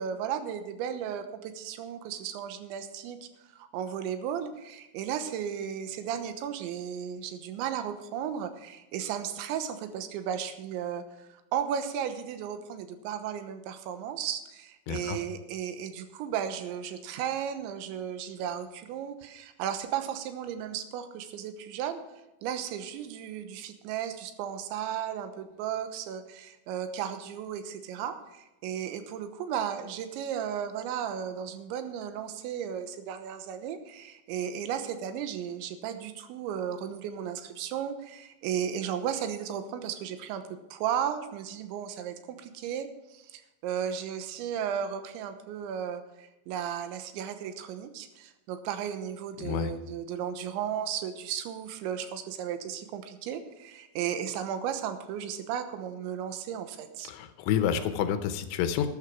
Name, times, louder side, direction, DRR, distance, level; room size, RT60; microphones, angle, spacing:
voice 1, 0.0-3.2 3.5-22.0 22.4-40.4 40.7-57.1, right 9 dB, 90° right, 9 dB, 3.4 m, -35 dB
voice 2, 14.9-15.2 49.4-49.7 57.1-58.9, left 9 dB, 80° left, 9 dB, 3.1 m, -29 dB
13.0 x 11.5 x 4.7 m, 1.0 s
omnidirectional pair, 5.2 m